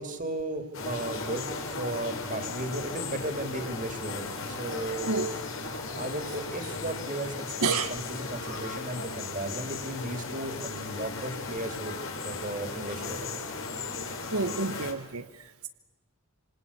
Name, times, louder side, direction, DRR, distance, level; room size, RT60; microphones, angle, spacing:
voice 1, 0.0-1.5 1.8-5.3 5.9-12.0 12.2-13.3, right 1 dB, 35° right, 8 dB, 2.9 m, -35 dB
sound 1, 0.7-14.9, left 3 dB, 65° left, 3.9 m, -36 dB
voice 2, 7.6-7.9 8.5-8.6 9.0-9.1 14.3-15.7, right 4 dB, 80° right, 9 dB, 1.0 m, -30 dB
27.0 x 26.0 x 8.4 m, 1.1 s
head